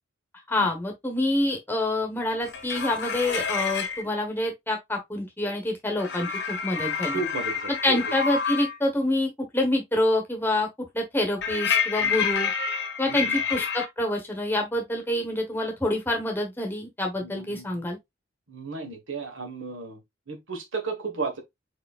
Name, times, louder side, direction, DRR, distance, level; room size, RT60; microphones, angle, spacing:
voice 1, 0.5-7.2 7.8-10.7 10.9-12.5 13.0-18.0, left 1 dB, 10° left, 1.1 m, -27 dB
sound 1, 2.4-4.0 6.0-8.8 11.4-13.9, left 6 dB, 60° left, 0.8 m, -28 dB
voice 2, 7.1-8.0 12.0-12.1 13.1-13.4 17.2-17.9 18.5-20.0 20.3-21.4, right 4 dB, 80° right, 1.4 m, -34 dB
4.8 x 4.5 x 2.4 m
head